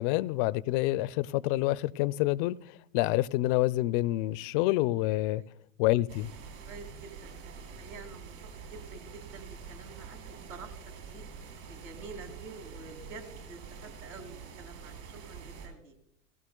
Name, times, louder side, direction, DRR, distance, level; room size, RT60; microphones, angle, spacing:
voice 1, 0.0-2.6 2.9-5.4 5.8-6.3, left 17 dB, 40° left, 0.4 m, -27 dB
sound 1, 6.1-15.7, right 6 dB, 55° right, 6.3 m, -46 dB
voice 2, 6.6-8.4 8.6-11.2 11.7-15.9, right 4 dB, 75° right, 2.7 m, -48 dB
17.5 x 17.0 x 2.3 m
hypercardioid pair, 105°, 41 cm